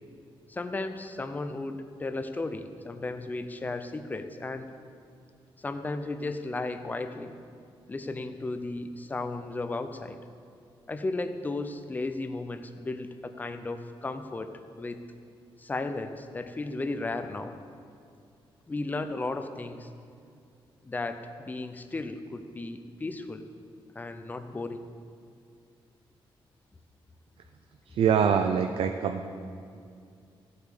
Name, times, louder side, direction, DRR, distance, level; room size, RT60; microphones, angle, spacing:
voice 1, 0.5-4.7 5.6-7.4 7.9-10.2 10.9-15.0 15.6-17.6 18.7-19.9 20.8-23.5 23.9-24.9, left 2 dB, 20° left, 9 dB, 0.6 m, -35 dB
voice 2, 27.9-29.3, right 7 dB, 75° right, 6 dB, 0.5 m, -24 dB
14.5 x 8.3 x 5.0 m, 2.4 s
wide cardioid pair, 155°, 10 cm